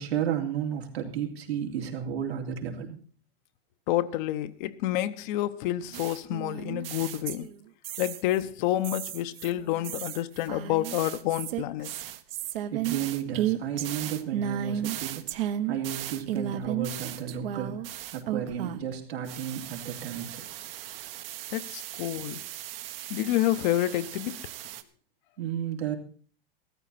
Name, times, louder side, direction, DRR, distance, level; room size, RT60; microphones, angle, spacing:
voice 1, 0.0-3.0 12.7-15.3 15.7-17.8 18.1-20.4 25.4-25.9, right 9 dB, 90° right, 3.2 m, -33 dB
voice 2, 3.9-7.5 8.0-11.9 21.5-22.4 23.1-24.4, left 14 dB, 50° left, 0.9 m, -29 dB
sound 1, 5.9-8.4 8.8-18.9 19.3-24.8, right 11 dB, 65° right, 1.3 m, -35 dB
15.0 x 13.5 x 4.2 m
hypercardioid pair, 130°, 31 cm